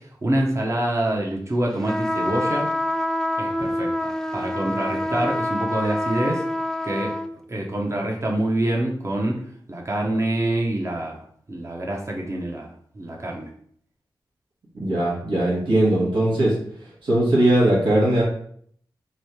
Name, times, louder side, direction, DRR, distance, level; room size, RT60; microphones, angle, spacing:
voice 1, 0.2-2.7 3.4-6.4 6.8-7.1 7.5-9.4 9.7-11.2 11.5-12.7 13.0-13.5, right 1 dB, 35° right, -1 dB, 0.8 m, -26 dB
sound 1, 1.9-7.3, left 1 dB, 5° left, 0.4 m, -26 dB
voice 2, 14.7-16.6 17.0-18.2, right 1 dB, 85° right, -6 dB, 1.3 m, -19 dB
3.1 x 2.7 x 4.4 m, 0.62 s
cardioid pair, 50°, 8 cm